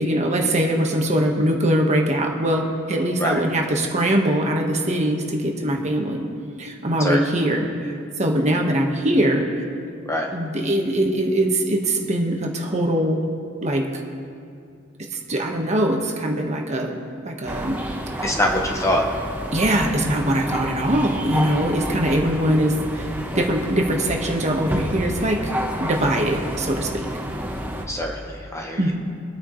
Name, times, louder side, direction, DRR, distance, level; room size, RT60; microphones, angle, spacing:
voice 1, 0.0-6.2 6.6-9.5 10.3-13.2 13.6-13.9 15.1-17.0 17.2-17.8 19.5-23.1 23.3-25.5 25.8-27.1 28.8-28.9, right 1 dB, 35° right, 1 dB, 1.4 m, -22 dB
sound 1, 17.5-27.9, equal, 10° right, 1.1 m, -30 dB
voice 2, 18.2-19.1 27.9-28.9, left 1 dB, 15° left, 1 dB, 0.9 m, -24 dB
25.0 x 9.2 x 3.2 m, 2.4 s
head